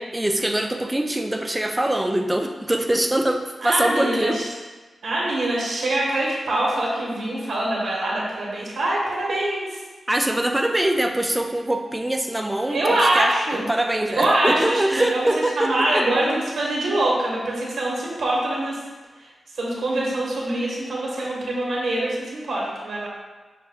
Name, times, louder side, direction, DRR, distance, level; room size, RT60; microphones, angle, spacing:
voice 1, 0.1-4.4 10.1-16.1, right 1 dB, 10° right, 4 dB, 0.4 m, -23 dB
voice 2, 3.6-4.5 5.0-9.8 12.7-13.6 14.2-15.3 15.5-18.8 19.6-23.1, right 1 dB, 85° right, -4 dB, 1.1 m, -24 dB
5.8 x 2.2 x 3.3 m, 1.3 s
wide cardioid pair, 90°, 0 cm